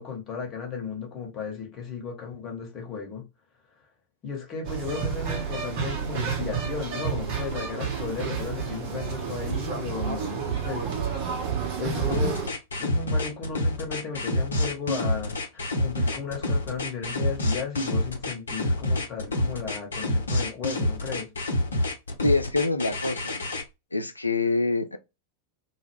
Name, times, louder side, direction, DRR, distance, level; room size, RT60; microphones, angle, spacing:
voice 1, 0.0-3.3 4.2-10.8 11.8-12.4 12.8-21.3, left 5 dB, 30° left, 1.0 m, -35 dB
sound 1, 4.6-12.5, right 6 dB, 45° right, 0.7 m, -30 dB
sound 2, 12.1-23.6, left 1 dB, 70° left, 0.7 m, -27 dB
voice 2, 22.2-23.4 23.9-25.0, left 3 dB, 85° left, 0.3 m, -25 dB
2.1 x 2.1 x 3.3 m
figure-of-eight pair, 90°, 0 cm